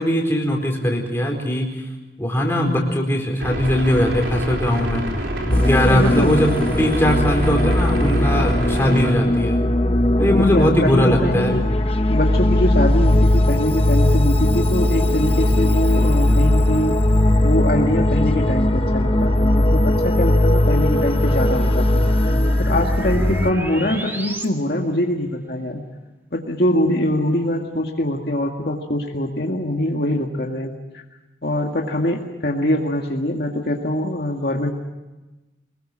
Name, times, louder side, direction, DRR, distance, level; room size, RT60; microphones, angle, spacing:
voice 1, 0.0-1.7 2.2-5.0 5.5-9.6 10.2-11.6, equal, 15° left, 0 dB, 4.4 m, -20 dB
sound 1, 3.4-9.1, right 1 dB, 75° right, 4.3 m, -27 dB
sound 2, 5.5-23.5, left 1 dB, 30° left, 1.0 m, -18 dB
voice 2, 5.8-6.4 10.3-16.9 17.4-25.8 26.3-31.0 31.4-34.7, left 1 dB, 55° left, 1 dB, 2.1 m, -23 dB
sound 3, 12.5-24.5, equal, 10° right, 1.9 m, -32 dB
24.5 x 21.0 x 7.5 m, 1.1 s
head